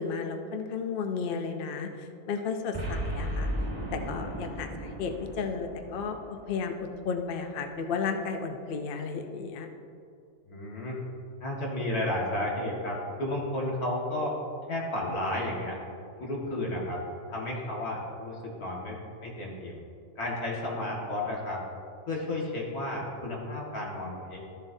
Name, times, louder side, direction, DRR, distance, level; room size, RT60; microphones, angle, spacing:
voice 1, 0.0-3.5 3.9-9.7, left 5 dB, 55° left, 5 dB, 0.6 m, -33 dB
Boom, 2.7-7.1, equal, 25° right, 1.8 m, -35 dB
voice 2, 10.5-11.0 11.4-14.3 14.7-15.8 16.2-17.0 17.3-19.8 20.2-21.6 22.1-24.4, left 1 dB, 85° left, -4 dB, 2.2 m, -32 dB
13.5 x 7.1 x 2.7 m, 2.5 s
omnidirectional pair, 1.6 m